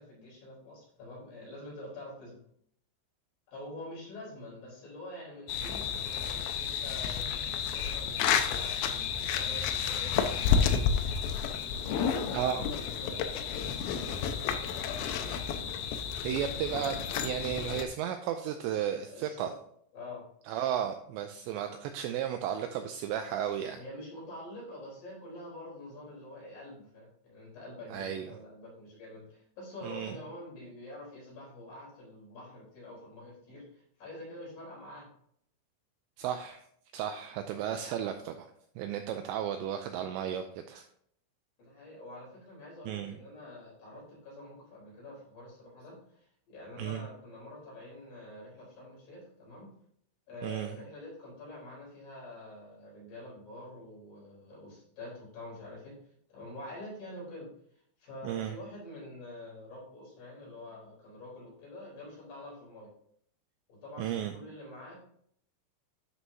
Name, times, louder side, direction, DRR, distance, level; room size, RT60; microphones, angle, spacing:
voice 1, 0.0-2.4 3.5-10.8 11.8-14.2 19.1-19.5 19.9-20.2 23.7-35.1 41.6-49.7 50.3-56.0 56.3-62.9 63.7-65.0, left 1 dB, 50° left, -5 dB, 5.2 m, -46 dB
sound 1, 5.5-17.9, left 7 dB, 85° left, 2.6 m, -31 dB
voice 2, 12.3-12.7 16.2-19.5 20.5-23.8 27.9-28.3 29.8-30.1 36.2-36.6 36.9-38.5 38.8-40.8 42.9-43.2 46.8-47.0 50.4-50.7 58.2-58.6 64.0-64.4, right 10 dB, 90° right, 7 dB, 2.5 m, -34 dB
11.5 x 6.2 x 2.7 m, 0.68 s
omnidirectional pair, 5.6 m